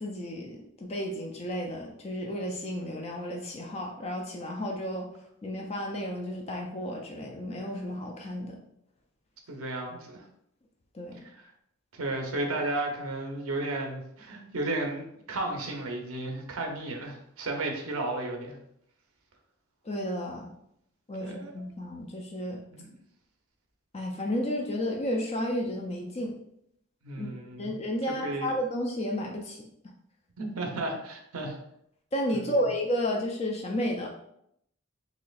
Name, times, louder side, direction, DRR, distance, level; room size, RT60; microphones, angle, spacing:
voice 1, 0.0-5.1 5.4-8.6 10.9-11.2 19.8-20.5 21.1-22.6 23.9-26.3 27.1-27.3 27.6-29.7 32.1-34.1, equal, 30° left, 1 dB, 0.4 m, -32 dB
voice 2, 9.5-10.2 11.2-11.3 11.9-18.6 21.2-21.5 22.7-22.9 27.0-27.7 28.1-28.5 30.4-31.6 32.3-32.4, right 2 dB, 90° right, 2 dB, 0.7 m, -33 dB
4.2 x 2.9 x 2.4 m, 0.75 s
head